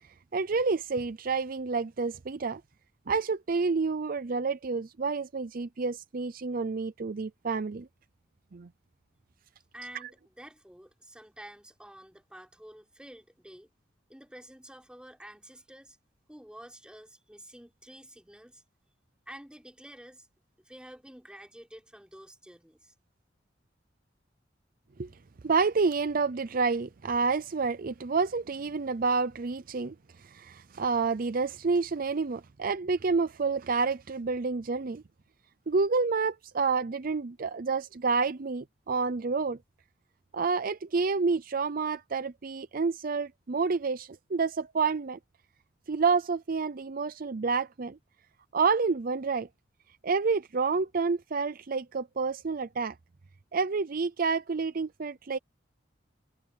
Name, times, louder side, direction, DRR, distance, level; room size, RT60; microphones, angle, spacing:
voice 1, 0.3-2.6 3.1-7.9 8.5-8.7 10.0-10.1 25.0-25.1 25.4-35.0 35.7-39.6 40.3-45.2 45.9-48.0 48.5-49.5 50.0-53.0 53.5-55.4, right 4 dB, 50° right, 0.6 m, -29 dB
voice 2, 9.7-13.7 14.1-16.0 16.3-18.6 19.3-20.3 20.6-22.9, right 1 dB, 5° right, 4.5 m, -49 dB
head